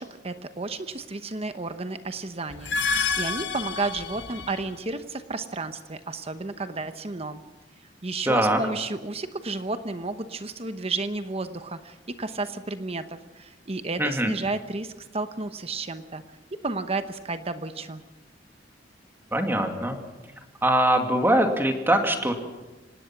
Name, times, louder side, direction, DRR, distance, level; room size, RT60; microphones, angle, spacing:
voice 1, 0.0-2.8 3.1-7.4 8.0-16.2 16.6-18.0, right 3 dB, 35° right, 10 dB, 1.0 m, -32 dB
sound 1, 2.5-4.8, left 5 dB, 80° left, 1.4 m, -29 dB
voice 2, 8.3-8.6 14.0-14.3 19.3-20.0 20.6-22.3, right 1 dB, 15° right, 4 dB, 2.4 m, -22 dB
25.5 x 18.5 x 6.0 m, 1.1 s
head